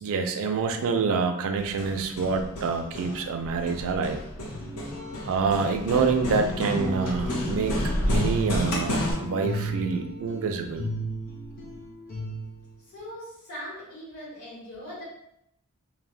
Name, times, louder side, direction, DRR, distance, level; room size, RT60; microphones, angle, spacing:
voice 1, 0.0-4.2 5.3-10.9, right 5 dB, 65° right, 6 dB, 0.3 m, -27 dB
Hammer, 1.6-9.1, left 1 dB, 85° left, 0.7 m, -31 dB
sound 1, 4.5-12.7, equal, 40° left, 0.6 m, -35 dB
voice 2, 12.8-15.1, equal, 70° left, -8 dB, 1.3 m, -40 dB
3.2 x 2.1 x 2.5 m, 0.77 s
head